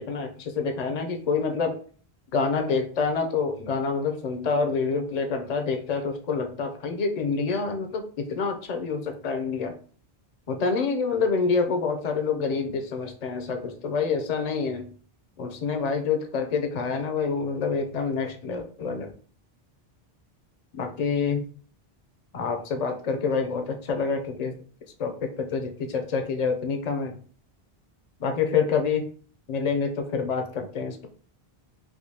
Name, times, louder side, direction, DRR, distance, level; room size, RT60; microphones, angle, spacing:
voice 1, 0.0-1.8 2.3-9.8 10.5-14.9 15.4-19.1 20.7-21.5 22.3-24.5 25.0-27.2 28.2-29.1 29.5-31.1, left 5 dB, 45° left, 4 dB, 0.6 m, -27 dB
3.6 x 2.7 x 2.8 m, 0.42 s
omnidirectional pair, 1.0 m